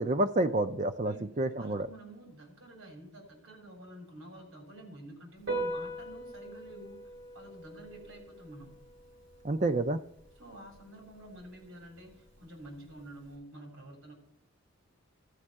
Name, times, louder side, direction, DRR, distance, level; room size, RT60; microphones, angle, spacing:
voice 1, 0.0-1.9 9.4-10.0, right 2 dB, 35° right, 10 dB, 0.5 m, -29 dB
voice 2, 1.0-7.1 7.3-8.8 10.4-14.1, right 1 dB, 80° right, 2 dB, 3.3 m, -49 dB
Piano, 5.4-13.3, right 2 dB, 60° right, 3.3 m, -43 dB
12.5 x 4.4 x 7.4 m, 0.75 s
head